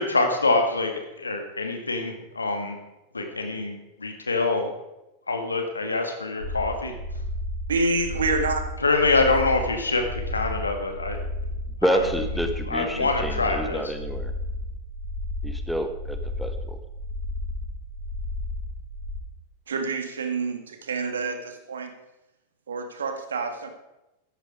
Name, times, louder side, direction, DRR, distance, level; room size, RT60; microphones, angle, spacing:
voice 1, 0.0-2.8 3.1-4.7 5.3-6.9 8.8-11.2 11.8-12.1 12.7-13.9, left 3 dB, 80° left, 4 dB, 2.0 m, -25 dB
sound 1, 6.4-19.2, left 1 dB, 85° right, 5.8 m, -33 dB
voice 2, 7.7-8.6 19.7-21.9 22.7-23.7, right 3 dB, 65° right, 6 dB, 1.8 m, -27 dB
voice 3, 11.8-14.3 15.4-16.8, right 1 dB, ahead, 6 dB, 1.4 m, -28 dB
13.5 x 10.5 x 4.9 m, 0.95 s
figure-of-eight pair, 90°, 0 cm